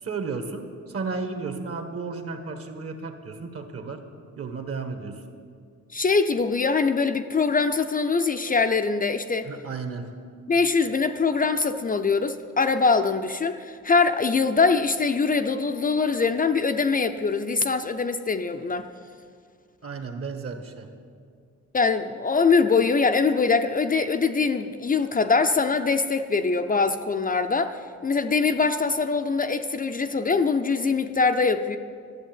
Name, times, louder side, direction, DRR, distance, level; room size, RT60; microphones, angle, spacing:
voice 1, 0.0-4.0 4.4-5.2 9.4-10.1 19.8-20.9, right 4 dB, 50° right, 6 dB, 1.5 m, -33 dB
voice 2, 5.9-9.5 10.5-18.9 21.7-31.8, left 4 dB, 30° left, 7 dB, 0.5 m, -23 dB
13.0 x 7.6 x 9.0 m, 2.1 s
cardioid pair, 115°, 30 cm